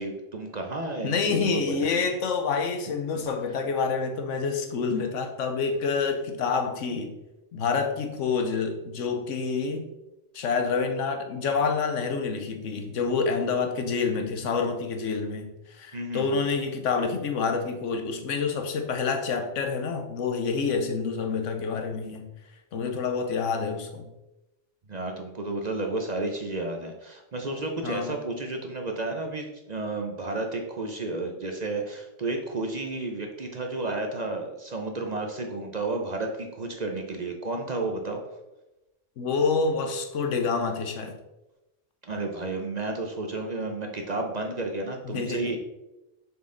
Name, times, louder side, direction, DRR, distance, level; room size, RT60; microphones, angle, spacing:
voice 1, 0.0-2.0 15.9-16.4 24.9-38.2 42.1-45.6, right 2 dB, 45° right, 3 dB, 0.6 m, -32 dB
voice 2, 1.0-7.1 7.5-9.9 10.3-22.3 22.7-24.1 27.8-28.2 39.2-41.1 45.0-45.5, left 5 dB, 80° left, 6 dB, 1.2 m, -27 dB
6.9 x 4.4 x 3.8 m, 0.98 s
omnidirectional pair, 1.3 m